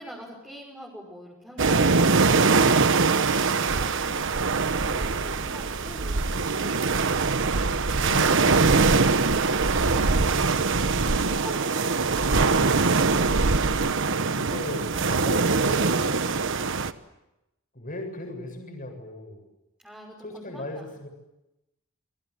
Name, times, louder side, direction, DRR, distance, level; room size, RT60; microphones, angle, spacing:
voice 1, 0.0-2.3 3.4-7.1 9.9-12.1 19.8-20.8, equal, 5° right, -3 dB, 6.0 m, -44 dB
sound 1, 1.6-16.9, right 4 dB, 60° right, 1.2 m, -23 dB
voice 2, 2.6-3.0 7.9-9.0 12.3-12.8 14.3-16.0 17.7-19.4 20.2-21.1, left 1 dB, 40° left, 3 dB, 7.7 m, -37 dB
sound 2, 3.7-13.9, right 1 dB, 85° right, 1.3 m, -31 dB
29.0 x 23.5 x 8.3 m, 0.93 s
head